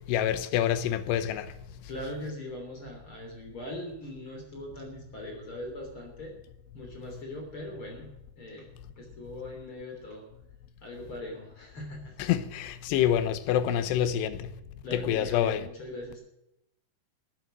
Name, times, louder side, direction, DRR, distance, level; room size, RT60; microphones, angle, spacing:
voice 1, 0.1-1.5 12.2-14.5 14.9-15.6, left 10 dB, 90° left, 3.0 m, -27 dB
voice 2, 1.9-6.3 6.7-8.1 8.4-8.7 9.0-10.2 10.8-12.1 14.8-16.2, left 1 dB, 35° left, 3.6 m, -40 dB
15.0 x 9.2 x 7.4 m
omnidirectional pair, 4.7 m